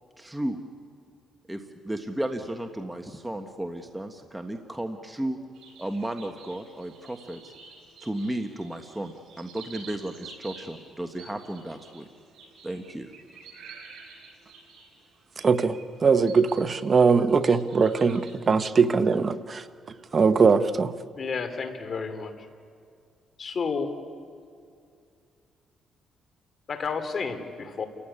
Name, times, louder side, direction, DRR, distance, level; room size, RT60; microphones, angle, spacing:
voice 1, 0.2-0.6 1.5-5.4 5.8-7.5 8.0-12.1 12.6-13.1, right 1 dB, 10° right, 5 dB, 1.5 m, -34 dB
sound 1, 5.5-16.7 17.1-18.3, right 5 dB, 75° right, 7.6 m, -49 dB
voice 2, 15.4-19.6 20.1-20.9, right 5 dB, 40° right, 11 dB, 1.0 m, -21 dB
voice 3, 21.2-22.3 23.4-23.9 26.7-27.9, left 5 dB, 45° left, 9 dB, 2.7 m, -31 dB
30.0 x 15.5 x 9.9 m, 2.3 s
cardioid pair, 90°, 0 cm